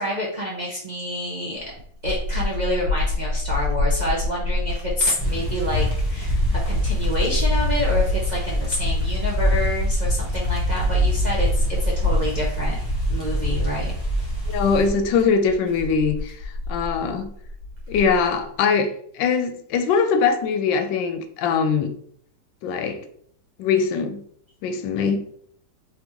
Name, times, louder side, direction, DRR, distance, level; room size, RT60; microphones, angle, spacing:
voice 1, 0.0-1.7 2.0-12.8 13.1-13.9, equal, 50° right, -5 dB, 0.5 m, -28 dB
sound 1, 1.6-18.4, left 2 dB, 85° right, 1.9 m, -27 dB
sound 2, 5.2-14.9, equal, 10° left, 1.3 m, -25 dB
voice 2, 14.5-16.3 16.7-17.3 17.9-21.9 22.6-23.0 23.6-24.2 24.6-25.2, left 5 dB, 85° left, 7 dB, 1.3 m, -22 dB
3.9 x 3.5 x 3.1 m, 0.63 s
omnidirectional pair, 2.0 m